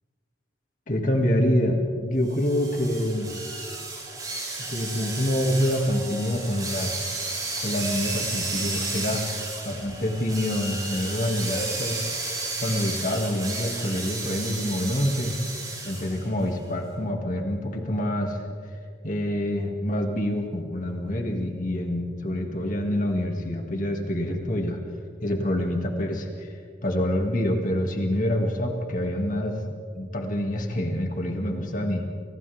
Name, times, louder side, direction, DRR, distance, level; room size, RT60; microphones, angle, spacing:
voice 1, 0.9-3.3 4.7-7.1 7.6-9.2 9.7-12.1 12.6-15.4 15.8-18.4 19.0-24.8 25.2-26.5 26.8-29.6 29.9-32.0, left 1 dB, 40° left, 2 dB, 2.4 m, -26 dB
sound 1, 2.3-16.2, right 3 dB, 20° right, 7.7 m, -33 dB
29.5 x 29.0 x 3.7 m, 2.4 s
head